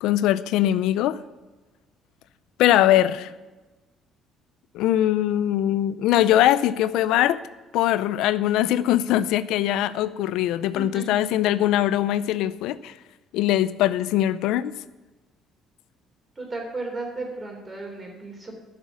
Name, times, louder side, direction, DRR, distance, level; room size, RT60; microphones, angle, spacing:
voice 1, 0.0-1.2 2.6-3.3 4.7-7.4 7.7-12.9 13.3-14.8, left 13 dB, 85° left, 0.4 m, -21 dB
voice 2, 2.8-3.1 10.7-11.2 16.4-18.5, right 2 dB, 20° right, 3.3 m, -35 dB
11.0 x 6.4 x 8.2 m
cardioid pair, 135°, 0 cm